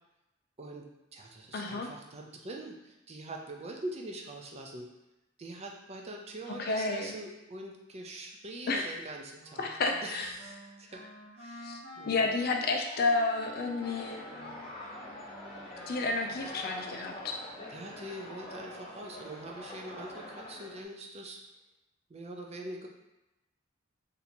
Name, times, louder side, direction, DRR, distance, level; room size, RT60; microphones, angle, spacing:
voice 1, 0.6-4.9 5.4-9.7 10.0-11.0 11.4-12.2 17.7-21.4 22.1-22.9, right 1 dB, 30° right, 0 dB, 0.5 m, -43 dB
voice 2, 1.5-1.9 6.6-7.1 8.7-8.9 9.6-10.3 11.6-11.8 12.1-14.2 15.9-17.4, left 3 dB, 50° left, 3 dB, 0.5 m, -30 dB
Wind instrument woodwind instrument, 9.4-16.7, equal, 90° right, 1.1 m, -50 dB
sound 1, 13.8-20.8, left 1 dB, 30° left, 0.9 m, -45 dB
2.8 x 2.6 x 4.2 m, 0.97 s
head